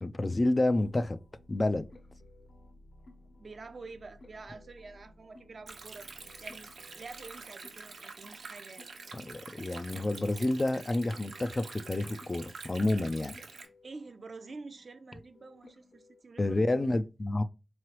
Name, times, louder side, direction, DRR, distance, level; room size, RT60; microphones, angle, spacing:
voice 1, 0.0-1.2 1.5-1.9 9.1-13.3 16.4-17.4, left 2 dB, 35° left, 0.4 m, -29 dB
sound 1, 0.7-16.2, left 2 dB, 65° left, 1.2 m, -58 dB
voice 2, 3.4-8.9 13.8-17.1, right 3 dB, 60° right, 0.6 m, -48 dB
Stream, 5.7-13.7, right 4 dB, 90° right, 0.9 m, -47 dB
3.8 x 3.1 x 3.0 m
cardioid pair, 70°, 0 cm